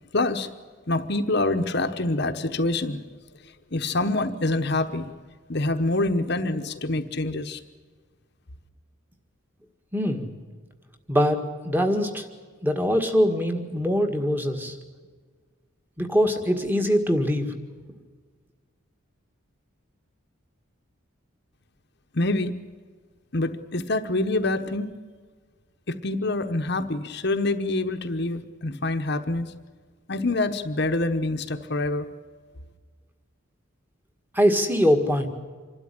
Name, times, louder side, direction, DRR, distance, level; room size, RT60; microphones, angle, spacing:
voice 1, 0.1-0.5 0.9-3.0 3.7-5.1 5.5-7.6 22.1-22.5 23.3-24.9 25.9-29.5 30.1-32.1, left 2 dB, 50° left, 7 dB, 1.1 m, -26 dB
voice 2, 9.9-10.3 11.1-12.3 12.6-14.8 16.0-17.5 34.3-35.3, equal, 10° right, 5 dB, 1.8 m, -23 dB
26.5 x 12.5 x 9.9 m, 1.5 s
head